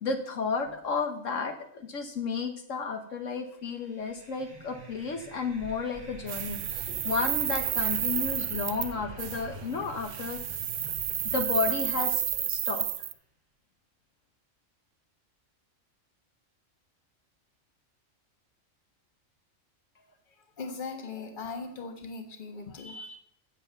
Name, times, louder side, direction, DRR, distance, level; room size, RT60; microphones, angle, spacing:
voice 1, 0.0-10.4 11.3-12.8, left 4 dB, 70° left, 5 dB, 1.3 m, -32 dB
sound 1, 3.8-13.0, right 2 dB, 30° right, 1.4 m, -46 dB
sound 2, 6.3-8.9 9.2-9.4 10.0-13.1, right 11 dB, 70° right, 1.0 m, -31 dB
voice 2, 20.6-23.2, left 4 dB, 40° left, 6 dB, 1.5 m, -39 dB
8.2 x 7.5 x 6.8 m, 0.65 s
omnidirectional pair, 1.4 m